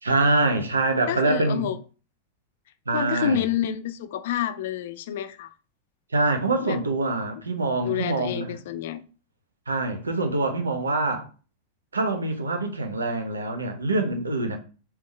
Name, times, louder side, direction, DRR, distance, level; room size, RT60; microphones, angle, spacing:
voice 1, 0.0-1.6 2.9-3.4 6.1-8.5 9.7-11.3 11.9-14.6, right 2 dB, 75° right, 0.7 m, -25 dB
voice 2, 1.1-1.8 2.9-5.5 6.6-6.8 7.3-7.4 7.8-9.0, left 9 dB, 55° left, 0.3 m, -28 dB
3.5 x 3.0 x 3.3 m
figure-of-eight pair, 90°, 0 cm